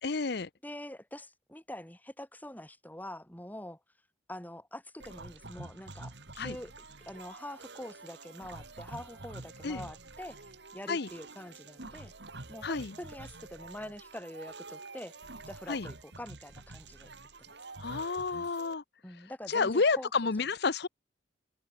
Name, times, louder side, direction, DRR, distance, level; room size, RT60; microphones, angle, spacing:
voice 1, 0.0-0.5 6.4-6.6 9.6-9.8 10.9-11.1 12.6-12.9 15.7-15.9 17.8-18.8 19.5-20.9, left 4 dB, 60° left, 0.8 m, -30 dB
voice 2, 0.6-3.8 4.3-6.7 7.1-12.1 12.5-15.2 15.5-17.1 17.5-17.6 19.0-20.3, left 1 dB, 10° left, 3.8 m, -45 dB
sound 1, 5.0-18.7, right 3 dB, 60° right, 2.3 m, -48 dB
head